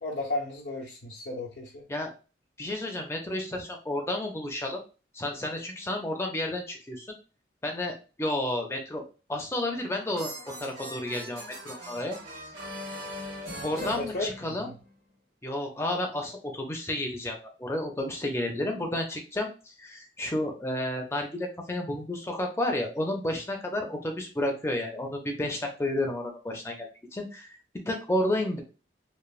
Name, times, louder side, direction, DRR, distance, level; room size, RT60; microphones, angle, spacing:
voice 1, 0.0-1.9 13.5-14.8, left 2 dB, 80° left, -4 dB, 0.7 m, -35 dB
voice 2, 2.6-4.8 5.1-7.1 7.6-9.0 9.3-10.3 10.6-12.2 13.6-14.7 15.4-26.9 27.1-27.5 27.9-28.6, left 1 dB, 15° left, 2 dB, 0.4 m, -31 dB
sound 1, 9.6-14.9, equal, 65° right, 1.1 m, -41 dB
3.0 x 2.0 x 2.3 m, 0.34 s
head